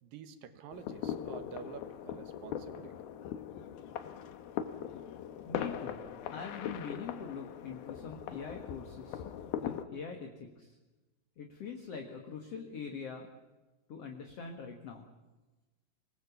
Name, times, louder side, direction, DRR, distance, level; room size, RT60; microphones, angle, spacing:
voice 1, 0.0-2.9, right 8 dB, 65° right, 10 dB, 2.7 m, -49 dB
sound 1, 0.7-9.8, left 9 dB, 70° left, 2.7 m, -40 dB
voice 2, 5.5-6.0 6.3-9.2 9.6-10.8 11.4-13.3 13.9-15.1, left 6 dB, 50° left, 3 dB, 2.0 m, -43 dB
25.5 x 20.0 x 7.2 m, 1.1 s
omnidirectional pair, 5.0 m